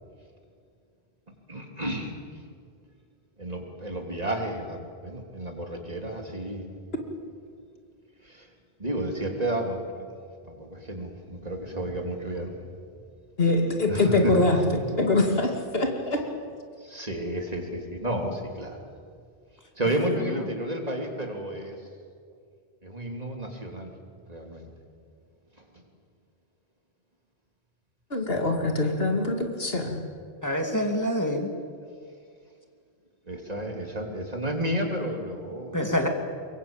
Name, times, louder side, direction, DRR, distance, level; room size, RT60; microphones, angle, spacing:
voice 1, 1.5-2.4 3.4-6.7 8.2-8.5 8.8-10.1 10.4-12.5 13.9-14.5 16.8-18.8 19.8-21.8 22.8-23.9 24.3-24.7 25.7-25.8 33.3-36.1, right 1 dB, 35° right, 2 dB, 3.2 m, -32 dB
voice 2, 13.4-16.2 28.1-30.0, left 2 dB, 55° left, 3 dB, 2.6 m, -24 dB
voice 3, 19.9-20.4 30.4-31.5 35.7-36.1, equal, 15° left, 3 dB, 2.6 m, -27 dB
23.5 x 22.5 x 8.9 m, 2.2 s
omnidirectional pair, 1.2 m